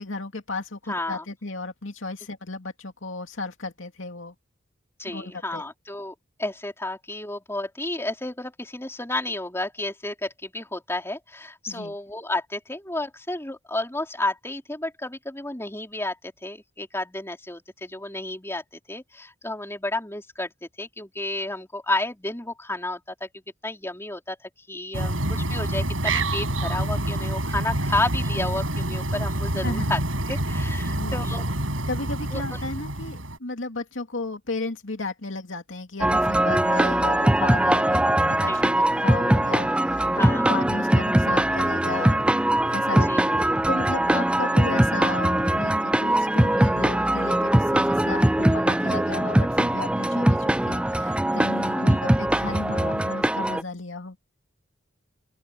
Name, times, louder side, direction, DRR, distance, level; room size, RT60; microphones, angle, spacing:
voice 1, 0.0-4.3 5.1-5.6 11.7-12.0 29.6-29.9 30.9-31.4 31.9-42.2 42.7-43.1 43.7-54.2, left 3 dB, 75° left, 2.6 m, -34 dB
voice 2, 0.9-1.2 5.0-23.3 23.6-24.4 24.7-30.0 30.3-31.5 32.3-32.6 38.5-38.6 40.2-40.5 43.1-43.3 51.7-52.0, left 2 dB, 15° left, 4.2 m, -31 dB
sound 1, 24.9-33.4, right 1 dB, 90° right, 7.8 m, -27 dB
sound 2, 36.0-53.6, right 1 dB, 5° right, 0.4 m, -21 dB
open air
head